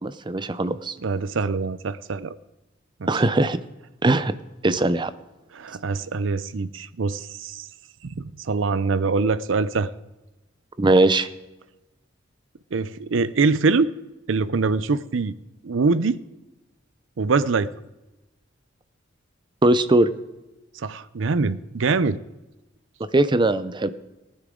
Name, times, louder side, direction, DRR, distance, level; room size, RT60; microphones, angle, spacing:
voice 1, 0.0-0.9 3.1-3.6 4.0-4.3 4.6-5.1 10.8-11.3 19.6-20.1 23.1-23.9, right 2 dB, 25° right, 13 dB, 0.5 m, -20 dB
voice 2, 1.0-2.4 3.0-3.2 5.5-7.7 8.0-9.9 12.7-13.9 14.3-15.3 15.6-16.2 17.2-17.7 20.8-22.2, right 4 dB, 70° right, 15 dB, 0.5 m, -24 dB
19.0 x 9.7 x 3.8 m, 1.0 s
head